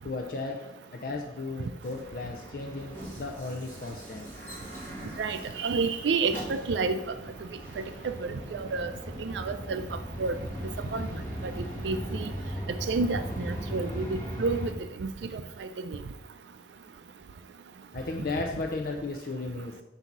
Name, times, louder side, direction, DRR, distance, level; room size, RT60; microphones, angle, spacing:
voice 1, 0.0-4.3 17.9-19.8, left 3 dB, 55° left, 3 dB, 0.5 m, -35 dB
sound 1, 1.8-14.7, equal, 10° left, 1.7 m, -38 dB
voice 2, 5.2-7.0 7.8-8.9 9.2-9.8 10.2-10.4 10.9-11.1 11.6-12.3 12.7-14.7 15.0-16.0, right 4 dB, 85° right, 9 dB, 0.4 m, -30 dB
7.8 x 2.8 x 5.9 m, 0.96 s
head